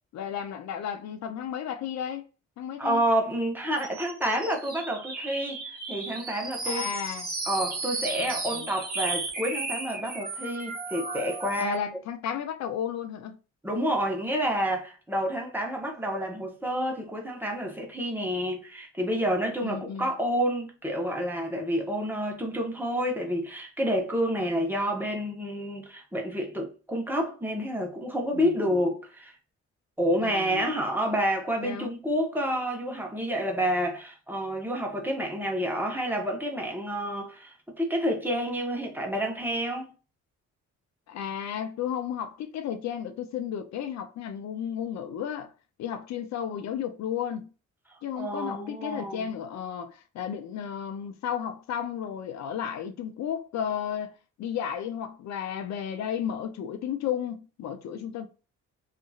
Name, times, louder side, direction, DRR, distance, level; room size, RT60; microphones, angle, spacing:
voice 1, 0.1-2.3 2.6-3.0 6.6-7.3 8.2-8.7 11.6-13.4 19.6-20.1 28.3-28.8 30.2-30.8 31.6-31.9 41.1-45.5 45.8-47.5 48.0-58.3, left 9 dB, 65° left, 0.5 m, -33 dB
voice 2, 2.8-6.8 7.5-11.8 13.6-29.3 30.0-39.9 48.2-49.3, equal, 5° right, 0.9 m, -29 dB
sound 1, 3.8-11.8, right 3 dB, 30° right, 1.3 m, -35 dB
2.8 x 2.6 x 2.3 m
cardioid pair, 90°, 30 cm